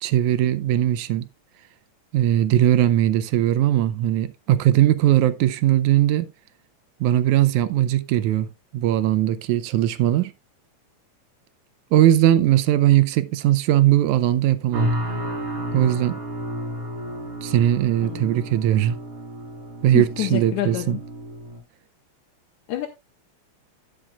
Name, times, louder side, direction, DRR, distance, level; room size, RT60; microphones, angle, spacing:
voice 1, 0.0-1.3 2.1-6.3 7.0-8.5 8.7-10.3 11.9-14.9 15.7-16.2 17.4-19.0 19.8-21.0, right 12 dB, 85° right, 2.1 m, -19 dB
sound 1, 14.7-21.6, equal, 50° right, 4.0 m, -31 dB
voice 2, 19.9-21.0 22.7-22.9, left 13 dB, 80° left, 2.3 m, -27 dB
17.5 x 5.9 x 2.3 m
omnidirectional pair, 3.4 m